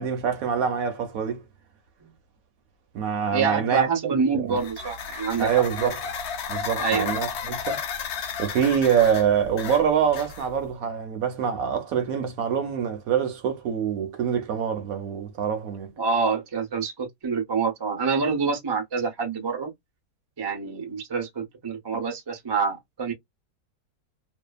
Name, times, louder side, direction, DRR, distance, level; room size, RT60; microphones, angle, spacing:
voice 1, 0.0-1.4 2.9-4.6 5.4-6.0 6.5-7.8 8.4-15.9, right 7 dB, 65° right, 1.0 m, -25 dB
voice 2, 3.3-5.5 6.8-7.1 16.0-19.7 20.4-23.1, right 5 dB, 35° right, 0.4 m, -26 dB
sound 1, 4.5-10.7, left 6 dB, 75° left, 0.6 m, -33 dB
2.7 x 2.4 x 2.2 m
omnidirectional pair, 1.8 m